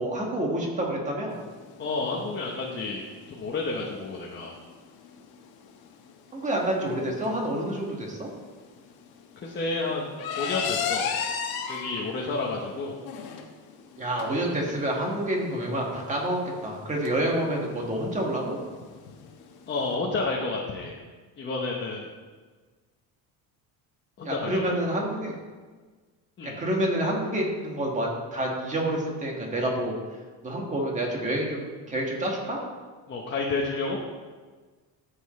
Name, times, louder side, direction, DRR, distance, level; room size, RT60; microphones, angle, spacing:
voice 1, 0.0-1.4 6.3-8.3 14.0-18.6 24.2-25.4 26.4-32.6, right 1 dB, 15° right, -1 dB, 1.8 m, -28 dB
sound 1, 1.3-19.9, left 7 dB, 60° left, 1.2 m, -37 dB
voice 2, 1.8-4.5 9.4-11.1 11.7-13.0 19.7-20.9 21.4-22.1 24.2-24.7 26.4-26.6 33.1-34.0, left 3 dB, 25° left, -3 dB, 1.0 m, -30 dB
13.0 x 7.8 x 3.2 m, 1.4 s
cardioid pair, 160°, 41 cm